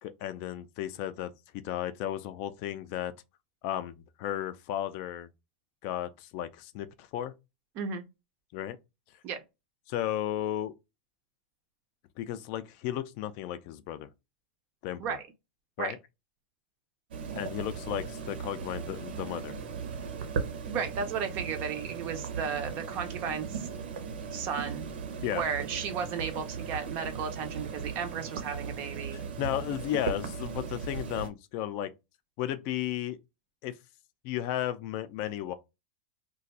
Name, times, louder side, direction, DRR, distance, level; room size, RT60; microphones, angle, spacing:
voice 1, 0.0-3.1 3.6-5.3 5.8-7.3 8.5-8.8 9.9-10.7 12.2-14.1 14.8-15.2 15.8-16.0 17.3-19.6 25.2-25.4 29.1-31.9 32.4-33.2 33.6-33.7 34.2-35.5, left 12 dB, 40° left, 0.3 m, -34 dB
sound 1, 17.1-31.3, right 6 dB, 80° right, 0.7 m, -37 dB
voice 2, 20.7-23.7 24.3-24.9 25.3-29.2, right 6 dB, 35° right, 0.4 m, -34 dB
2.5 x 2.2 x 4.0 m
supercardioid pair, 165°, 6 cm